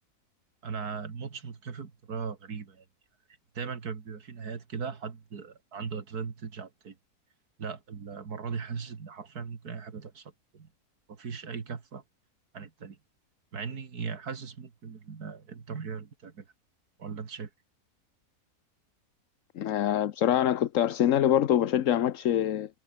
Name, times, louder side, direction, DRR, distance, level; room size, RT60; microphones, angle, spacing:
voice 1, 0.6-2.9 3.5-7.0 7.6-10.7 11.1-12.0 12.5-13.0 13.5-16.5 17.0-17.5, right 6 dB, 80° right, 2.5 m, -38 dB
voice 2, 19.6-22.7, left 11 dB, 60° left, 1.1 m, -25 dB
omnidirectional pair, 1.6 m